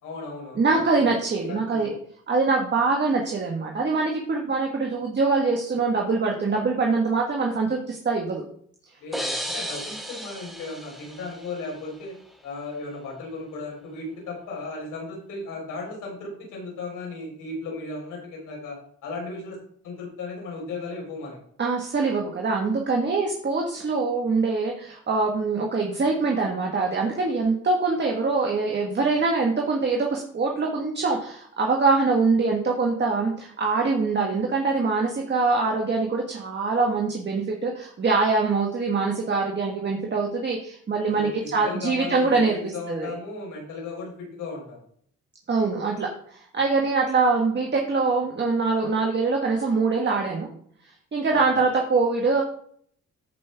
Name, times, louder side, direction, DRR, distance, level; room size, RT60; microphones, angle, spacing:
voice 1, 0.0-0.7 1.5-1.8 9.0-12.1 12.4-18.8 19.0-19.6 19.8-21.4 41.1-44.8 51.5-51.7, left 3 dB, 85° left, -1 dB, 4.6 m, -36 dB
voice 2, 0.5-1.9 2.3-8.4 21.6-42.6 42.9-43.1 45.5-50.5 51.1-52.4, right 4 dB, 35° right, 0 dB, 1.6 m, -24 dB
sound 1, 9.1-11.9, equal, ahead, 1.4 m, -34 dB
14.5 x 5.4 x 3.5 m, 0.62 s
cardioid pair, 90°, 30 cm